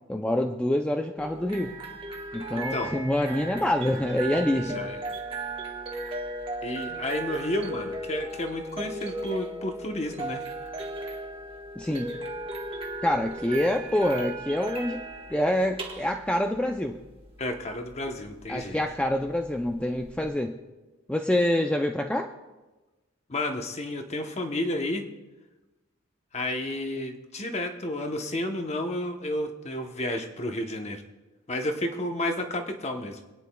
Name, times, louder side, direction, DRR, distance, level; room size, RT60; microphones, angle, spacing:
voice 1, 0.1-1.7 2.3-4.8 11.8-12.2 13.0-15.0 15.3-17.0 18.5-20.6 21.1-22.3, left 1 dB, 5° left, 3 dB, 0.4 m, -26 dB
sound 1, 1.2-20.3, right 2 dB, 25° right, 1.1 m, -37 dB
voice 2, 2.5-2.9 4.7-5.0 6.6-10.4 17.4-18.8 23.3-25.1 26.3-31.0 31.5-33.2, left 1 dB, 30° left, 5 dB, 0.9 m, -31 dB
27.0 x 9.4 x 2.3 m, 1.2 s
head